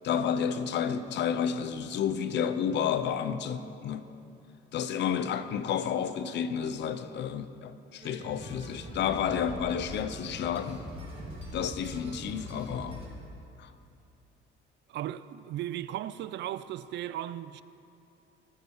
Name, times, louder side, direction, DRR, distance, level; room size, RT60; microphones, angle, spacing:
voice 1, 0.0-4.1 4.7-10.8 11.5-13.2 13.6-13.7, left 8 dB, 65° left, 0.8 m, -31 dB
sound 1, 8.0-13.1, equal, 30° right, 3.8 m, -42 dB
voice 2, 14.9-17.6, right 12 dB, 65° right, 0.5 m, -36 dB
19.5 x 12.0 x 4.9 m
cardioid pair, 130°, 20 cm